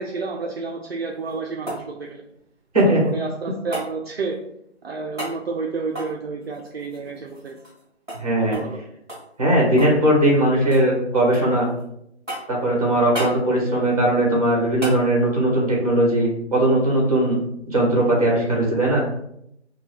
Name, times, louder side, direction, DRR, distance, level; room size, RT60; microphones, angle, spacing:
voice 1, 0.0-2.2 2.8-4.4 4.8-7.6 8.5-8.8, right 4 dB, 60° right, 0 dB, 0.5 m, -30 dB
sound 1, 1.0-3.1 3.7-3.9 5.1-5.4 5.9-7.8 8.1-8.2 8.5-8.7 9.1-10.0 10.3-10.9 11.3-11.8 12.3-12.6 13.1-13.4 14.8-15.0 17.4-17.5, right 1 dB, ahead, 0.9 m, -34 dB
voice 2, 8.1-8.6 9.4-11.7 12.5-17.4 17.7-19.0, right 1 dB, 30° right, -2 dB, 1.1 m, -19 dB
3.7 x 2.2 x 3.0 m, 0.76 s
figure-of-eight pair, 170°, 36 cm